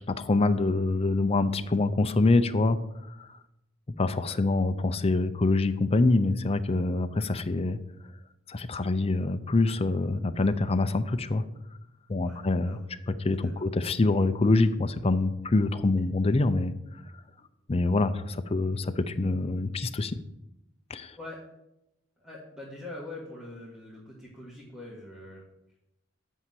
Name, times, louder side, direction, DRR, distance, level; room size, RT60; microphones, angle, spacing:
voice 1, 0.1-2.8 3.2-3.4 4.0-7.8 8.5-11.4 12.1-12.8 13.2-16.7 17.7-20.2 20.9-21.2, left 2 dB, 30° left, 10 dB, 0.5 m, -25 dB
voice 2, 12.2-12.9 13.4-13.5 21.1-21.4 22.2-25.4, left 2 dB, 5° right, -6 dB, 1.8 m, -43 dB
8.7 x 5.6 x 7.6 m, 0.86 s
head